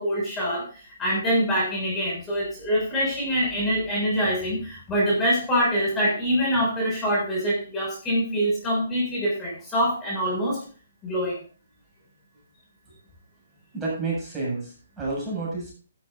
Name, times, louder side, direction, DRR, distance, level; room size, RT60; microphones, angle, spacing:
voice 1, 0.0-10.6 11.0-11.4, equal, 15° left, -4 dB, 6.9 m, -25 dB
voice 2, 13.7-15.7, right 3 dB, 10° right, -6 dB, 7.4 m, -30 dB
14.0 x 12.5 x 2.7 m, 0.40 s
hypercardioid pair, 150°, 0 cm